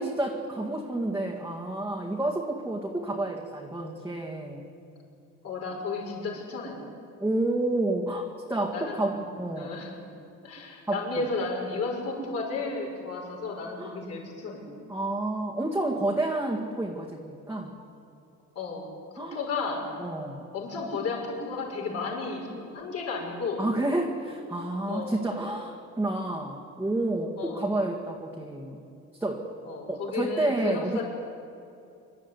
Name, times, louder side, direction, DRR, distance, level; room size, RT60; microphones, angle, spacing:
voice 1, 0.0-4.6 7.2-8.2 8.5-9.9 10.9-11.3 13.8-14.0 14.9-17.8 19.2-19.4 20.0-20.5 23.6-28.9 29.2-29.5 29.9-31.0, right 2 dB, 5° right, -3 dB, 2.0 m, -30 dB
voice 2, 5.4-6.8 8.7-9.3 9.5-9.9 10.4-14.7 18.5-18.9 19.1-19.9 20.5-22.5 22.7-23.6 24.9-25.2 27.4-27.7 29.6-31.0, left 4 dB, 55° left, -1 dB, 6.2 m, -33 dB
26.0 x 12.5 x 9.8 m, 2.6 s
cardioid pair, 140°, 30 cm